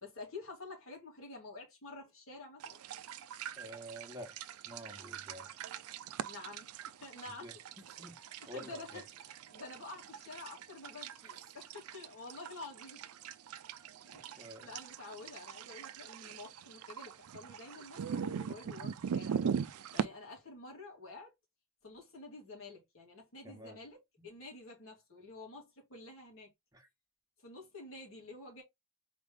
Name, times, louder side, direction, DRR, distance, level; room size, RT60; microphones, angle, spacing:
voice 1, 0.0-2.8 6.3-7.5 8.4-9.0 9.5-13.0 14.0-19.5 19.9-21.3 21.8-26.5 27.4-28.6, left 3 dB, 70° left, 2.6 m, -49 dB
sound 1, 2.6-20.0, right 7 dB, 85° right, 0.4 m, -42 dB
voice 2, 3.6-4.3 4.6-5.5 7.3-9.0 14.4-14.7 23.4-23.8 24.2-24.3 26.7-26.9, equal, 15° right, 1.3 m, -49 dB
4.1 x 3.3 x 3.6 m
head